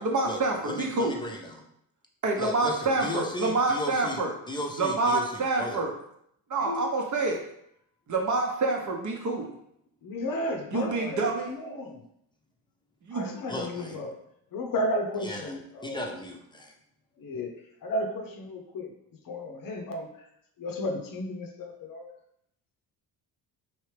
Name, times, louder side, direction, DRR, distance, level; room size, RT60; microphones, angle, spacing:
voice 1, 0.0-1.2 2.2-4.3 4.7-5.9 6.5-7.4 8.1-9.5 10.7-11.5 13.0-13.3, right 3 dB, 40° right, 1 dB, 0.8 m, -27 dB
voice 2, 0.6-1.4 2.4-5.2 5.6-5.8 13.5-14.0 15.2-16.7, left 1 dB, 10° left, 1 dB, 0.7 m, -35 dB
voice 3, 10.0-11.2 11.5-12.0 13.1-14.2 14.5-16.0 17.2-18.9 19.2-20.1 20.6-22.1, left 1 dB, 50° left, 3 dB, 0.7 m, -33 dB
3.1 x 2.9 x 3.2 m, 0.74 s
hypercardioid pair, 60°, 45 cm